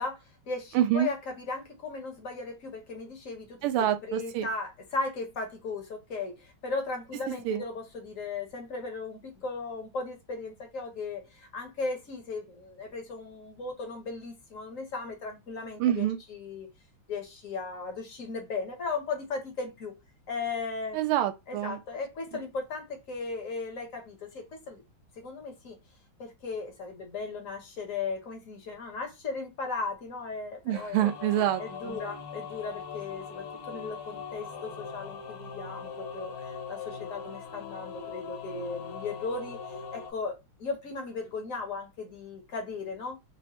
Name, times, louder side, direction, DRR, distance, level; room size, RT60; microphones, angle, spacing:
voice 1, 0.0-3.7 4.0-16.7 17.1-19.9 20.3-21.0 21.5-24.8 25.2-25.8 26.2-31.1 31.6-39.6 39.9-43.2, left 4 dB, 55° left, 0.9 m, -37 dB
voice 2, 0.7-1.1 3.6-4.5 7.4-7.6 15.8-16.2 20.9-21.8 30.7-32.0, right 11 dB, 85° right, 1.5 m, -27 dB
sound 1, 31.0-40.1, left 6 dB, 75° left, 1.6 m, -41 dB
4.6 x 2.1 x 2.9 m
omnidirectional pair, 2.4 m